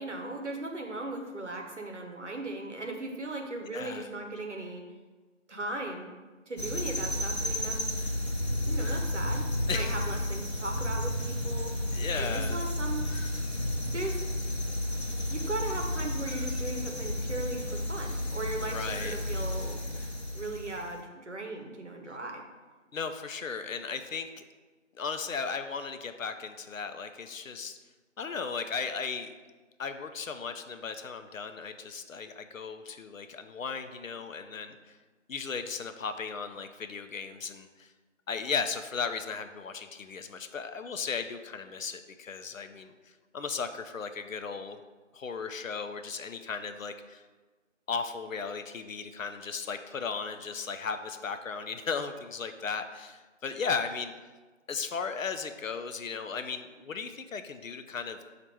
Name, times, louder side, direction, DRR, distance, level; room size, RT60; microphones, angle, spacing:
voice 1, 0.0-4.8 5.5-6.1 6.5-7.9 8.7-11.7 12.2-13.0 13.9-14.2 15.3-19.8 20.3-22.4, right 2 dB, 65° right, 2 dB, 0.8 m, -37 dB
voice 2, 3.7-4.1 9.7-10.0 11.9-12.6 18.6-19.2 22.9-24.4 25.0-27.8 28.2-29.3 29.8-35.0 35.3-37.9 38.3-42.9 43.3-44.8 45.1-47.2 47.9-54.1 54.7-58.2, left 5 dB, 85° left, 8 dB, 0.5 m, -36 dB
sound 1, 6.6-20.9, left 1 dB, 55° left, 0.8 m, -32 dB
4.2 x 2.5 x 4.6 m, 1.3 s
figure-of-eight pair, 180°, 39 cm